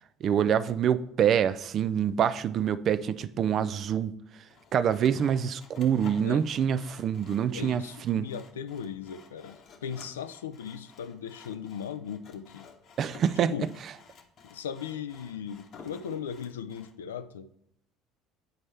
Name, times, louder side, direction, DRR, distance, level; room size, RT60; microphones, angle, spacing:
voice 1, 0.2-4.1 4.7-8.3 13.0-13.5, right 8 dB, 50° right, 0.4 m, -26 dB
Sawing, 4.5-16.9, left 5 dB, 55° left, 0.9 m, -53 dB
voice 2, 7.5-12.7 13.5-13.7 14.5-17.5, left 8 dB, 85° left, 0.3 m, -38 dB
9.2 x 4.2 x 3.3 m
hypercardioid pair, 65°, 0 cm